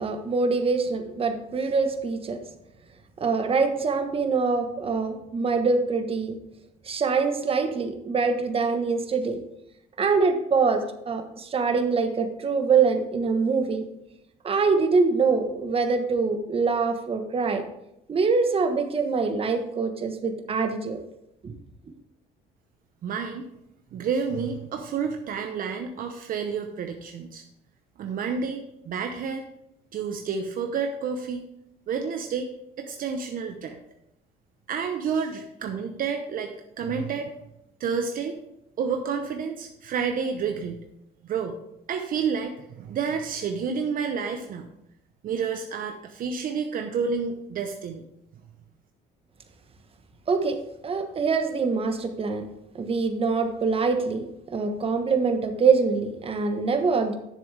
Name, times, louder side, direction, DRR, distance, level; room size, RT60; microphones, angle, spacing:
voice 1, 0.0-2.4 3.2-6.4 6.8-9.4 10.0-13.8 14.4-17.6 18.1-21.0 21.4-21.5 50.3-50.6 50.8-52.4 52.7-54.2 54.5-57.2, right 4 dB, 35° right, 6 dB, 1.2 m, -24 dB
voice 2, 23.0-23.5 23.9-27.4 28.0-29.5 29.9-31.4 31.9-32.5 32.8-33.8 34.7-37.3 37.8-38.4 38.8-40.8 41.2-41.6 41.9-44.7 45.2-48.0, right 6 dB, 55° right, 5 dB, 0.9 m, -30 dB
10.5 x 7.1 x 3.4 m, 0.82 s
cardioid pair, 110°, 17 cm